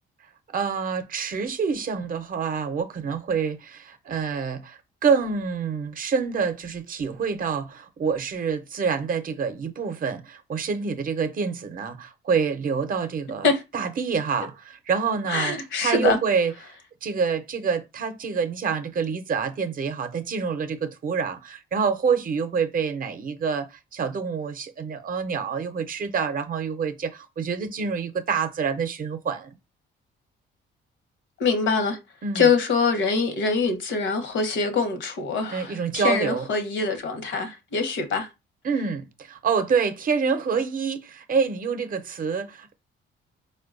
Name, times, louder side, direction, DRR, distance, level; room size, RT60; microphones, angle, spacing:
voice 1, 0.5-16.7 17.0-29.6 32.2-32.5 35.5-36.5 38.6-42.7, right 6 dB, 45° right, 0.6 m, -27 dB
voice 2, 15.3-16.2 31.4-32.0 32.3-38.3, left 4 dB, 70° left, 0.8 m, -24 dB
4.4 x 2.2 x 2.4 m
cardioid pair, 90°, 20 cm